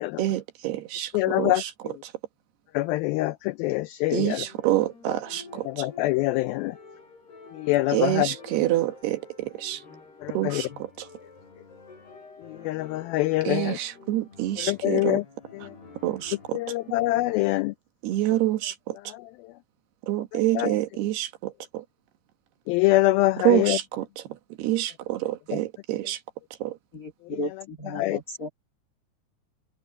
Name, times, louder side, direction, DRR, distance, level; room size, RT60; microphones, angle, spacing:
voice 1, 0.2-1.1 1.4-1.7 4.1-5.9 7.9-9.8 10.3-10.7 11.0-11.1 13.5-15.2 16.0-16.6 18.0-19.0 20.1-21.8 23.4-24.0 24.6-26.2 26.6-26.7, right 15 dB, 75° right, 3.4 m, -27 dB
voice 2, 1.1-2.0 2.7-4.5 5.7-6.8 7.5-8.3 10.2-10.6 12.5-13.8 14.6-15.2 15.5-15.7 16.5-17.7 19.1-19.2 20.3-20.7 22.7-23.8 25.5-25.6 28.0-28.2, left 18 dB, 90° left, 2.1 m, -25 dB
sound 1, 4.3-17.6, left 4 dB, 70° left, 10.0 m, -48 dB
voice 3, 26.9-28.5, left 2 dB, 35° left, 1.6 m, -34 dB
omnidirectional pair, 4.8 m